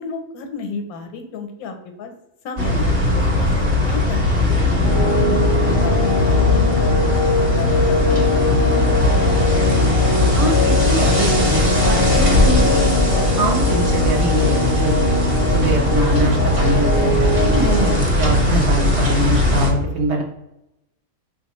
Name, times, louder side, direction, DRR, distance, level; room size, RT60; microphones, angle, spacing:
voice 1, 0.0-2.1 2.4-5.1 5.5-8.7 9.1-9.2, left 4 dB, 85° left, 5 dB, 1.1 m, -33 dB
sound 1, 2.6-19.7, left 2 dB, 30° right, 0.6 m, -18 dB
sound 2, 4.8-18.0, left 2 dB, 50° left, 0.7 m, -22 dB
voice 2, 10.3-15.0 15.5-20.2, right 1 dB, 60° right, 0 dB, 0.8 m, -23 dB
3.9 x 2.3 x 2.9 m, 0.88 s
omnidirectional pair, 1.5 m